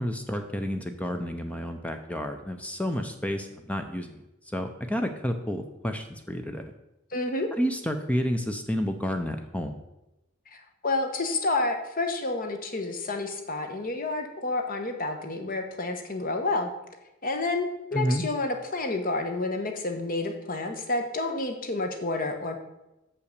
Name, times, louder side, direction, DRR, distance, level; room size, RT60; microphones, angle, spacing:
voice 1, 0.0-4.2 4.5-6.6 7.6-9.8 17.9-18.2, equal, 5° left, 6 dB, 0.6 m, -30 dB
voice 2, 7.1-7.5 10.5-16.7 17.2-22.6, left 2 dB, 40° left, 5 dB, 1.1 m, -29 dB
7.0 x 5.7 x 6.5 m, 0.93 s
head